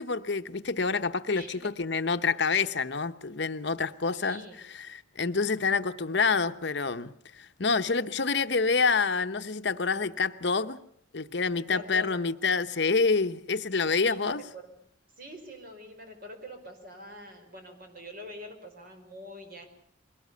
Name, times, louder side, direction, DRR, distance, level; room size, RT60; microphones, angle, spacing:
voice 1, 0.0-10.8 11.1-14.4, left 4 dB, 60° left, 0.9 m, -27 dB
voice 2, 1.3-1.7 4.1-4.6 11.7-12.1 13.9-14.7 15.2-19.7, left 1 dB, 50° right, 5.0 m, -44 dB
22.5 x 19.0 x 8.3 m
head